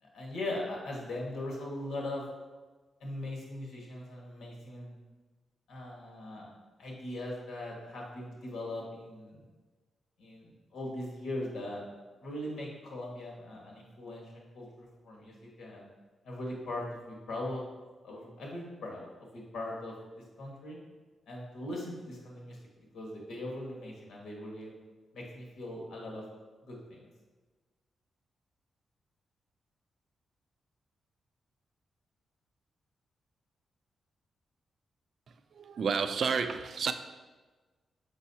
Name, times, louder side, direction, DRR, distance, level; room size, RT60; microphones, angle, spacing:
voice 1, 0.0-2.3 3.0-5.0 5.7-6.5 6.8-9.4 10.2-11.8 12.2-15.8 16.2-17.6 18.0-19.9 20.4-20.8 21.3-24.7 25.1-26.2 26.6-27.1, left 1 dB, 80° left, -2 dB, 1.6 m, -40 dB
voice 2, 35.5-36.9, right 5 dB, 55° right, 10 dB, 0.4 m, -30 dB
6.2 x 5.6 x 2.8 m, 1.3 s
cardioid pair, 115°, 0 cm